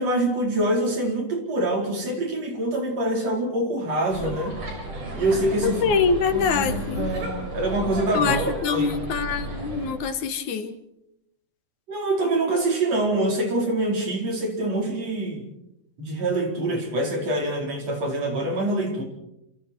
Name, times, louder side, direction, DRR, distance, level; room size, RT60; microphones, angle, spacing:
voice 1, 0.0-4.6 5.1-5.8 6.3-8.4 8.7-9.0 11.9-15.4 16.0-19.0, right 1 dB, 55° right, 1 dB, 5.7 m, -25 dB
sound 1, 4.1-9.9, right 1 dB, 85° right, 7.7 m, -33 dB
voice 2, 5.6-7.1 8.1-10.8, left 6 dB, 70° left, 9 dB, 2.7 m, -24 dB
29.0 x 27.0 x 4.6 m, 0.81 s
omnidirectional pair, 3.6 m